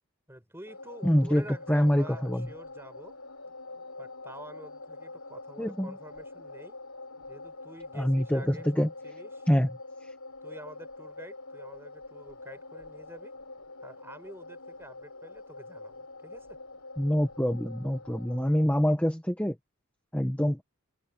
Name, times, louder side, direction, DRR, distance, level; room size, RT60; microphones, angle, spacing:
voice 1, 0.3-3.1 4.0-6.8 7.3-9.5 10.4-13.3 13.8-16.6, right 1 dB, 10° right, 5.4 m, -48 dB
sound 1, 0.7-18.6, left 2 dB, 80° left, 6.3 m, -45 dB
voice 2, 1.0-1.4 1.7-2.5 5.6-5.9 7.9-8.9 9.5-9.7 10.0-10.1 17.0-19.5 20.1-20.6, equal, 5° left, 1.1 m, -25 dB
head